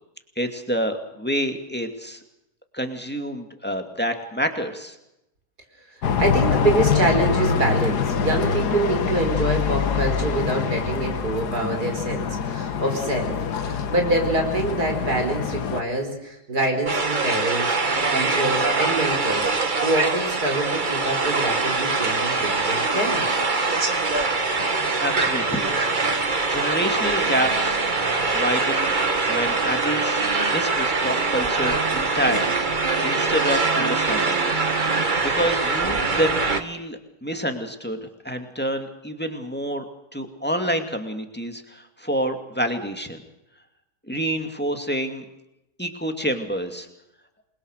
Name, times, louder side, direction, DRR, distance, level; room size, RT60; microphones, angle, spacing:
voice 1, 0.4-2.2 2.7-5.0 25.0-25.7 26.5-27.8 28.3-29.0 29.3-32.6 33.0-34.5 34.9-38.0 38.2-39.8 40.1-43.2 44.1-45.2 45.8-46.9, equal, 5° left, 5 dB, 2.3 m, -28 dB
sound 1, 6.0-15.8, left 6 dB, 85° left, 1.8 m, -25 dB
voice 2, 6.0-13.3 13.6-17.7 18.1-19.5 19.8-23.3, right 2 dB, 75° right, 3 dB, 5.5 m, -25 dB
sound 2, 16.8-36.6, right 3 dB, 30° right, 1.6 m, -23 dB
28.0 x 22.0 x 6.6 m, 0.88 s
omnidirectional pair, 1.7 m